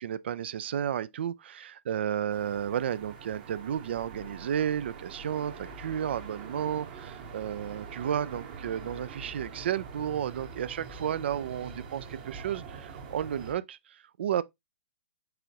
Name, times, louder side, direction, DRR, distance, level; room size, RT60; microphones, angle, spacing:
voice 1, 0.0-14.4, right 9 dB, 65° right, 0.4 m, -32 dB
sound 1, 2.3-13.5, right 5 dB, 45° right, 1.1 m, -44 dB
4.8 x 3.6 x 2.9 m
hypercardioid pair, 130°, 6 cm